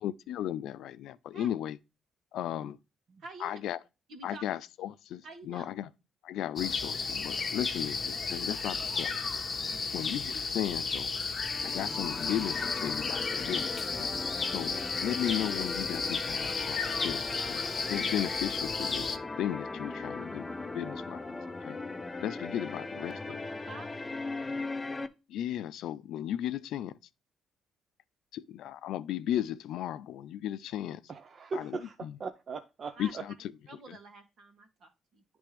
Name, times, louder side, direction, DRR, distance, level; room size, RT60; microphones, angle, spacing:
voice 1, 0.0-1.8 2.3-2.8 3.4-3.8 4.2-5.9 6.2-9.1 9.9-11.1 11.6-14.1 14.4-17.6 17.9-21.3 21.6-21.8 22.2-23.4 25.3-27.0 28.3-31.0 31.5-32.2 33.0-33.5 33.9-34.0, left 11 dB, 80° left, 0.4 m, -35 dB
voice 2, 3.2-3.6 4.1-4.4 5.2-5.7 9.6-9.9 23.0-23.3 23.7-23.9 32.9-33.1 33.7-35.2, right 3 dB, 65° right, 1.7 m, -48 dB
sound 1, 6.6-19.2, left 4 dB, 40° left, 1.0 m, -33 dB
sound 2, 11.4-25.1, left 3 dB, 20° left, 0.7 m, -39 dB
voice 3, 31.1-33.3, right 4 dB, 50° right, 0.6 m, -39 dB
10.0 x 3.4 x 3.2 m
cardioid pair, 90°, 0 cm